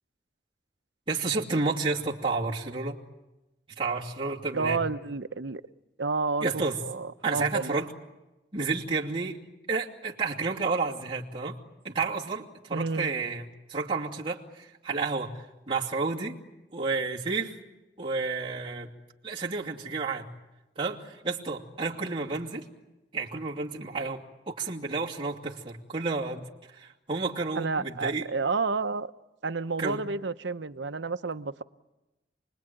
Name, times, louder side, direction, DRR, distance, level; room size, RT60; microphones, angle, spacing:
voice 1, 1.1-3.0 3.8-4.8 6.4-6.8 7.2-7.9 8.5-9.4 9.7-11.6 11.8-12.4 12.7-16.4 16.7-17.6 18.0-18.9 19.2-20.3 20.8-22.6 23.1-26.4 26.8-28.3 29.8-30.0, right 4 dB, 30° right, -4 dB, 2.6 m, -31 dB
voice 2, 4.5-5.6 6.0-7.8 12.7-13.1 27.5-29.1 29.4-31.6, right 4 dB, 75° right, 12 dB, 0.9 m, -30 dB
29.5 x 21.0 x 9.1 m, 1.0 s
head